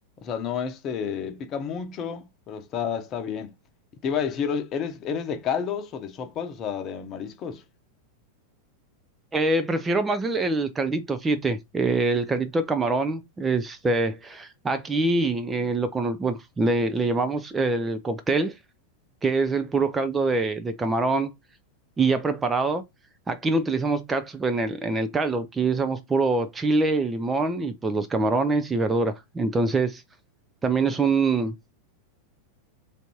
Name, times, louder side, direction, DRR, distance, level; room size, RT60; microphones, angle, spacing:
voice 1, 0.2-3.5 4.0-7.6, left 7 dB, 30° left, 0.8 m, -30 dB
voice 2, 9.3-18.6 19.2-21.3 22.0-22.8 23.3-30.0 30.6-31.5, right 3 dB, 15° right, 0.5 m, -24 dB
3.4 x 2.6 x 4.4 m
figure-of-eight pair, 90°, 0 cm